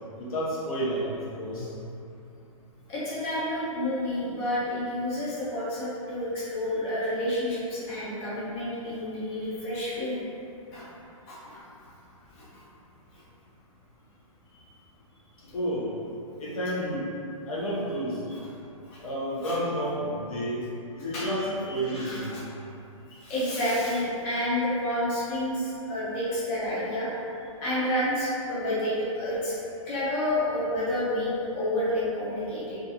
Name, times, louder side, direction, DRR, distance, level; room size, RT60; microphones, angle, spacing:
voice 1, 0.2-1.7 15.5-15.9 16.4-17.1 17.5-18.2 19.0-20.7 20.9-22.3, equal, 80° left, -6 dB, 0.9 m, -30 dB
voice 2, 2.9-10.2 10.7-10.8 11.3-11.9 12.3-12.6 13.1-13.2 15.4-15.6 18.3-18.4 18.8-19.0 19.4-19.6 21.1-22.4 23.1-27.1 27.6-29.5 29.9-32.8, left 1 dB, 20° left, -9 dB, 0.5 m, -30 dB
2.5 x 2.3 x 2.8 m, 2.7 s
hypercardioid pair, 165°, 18 cm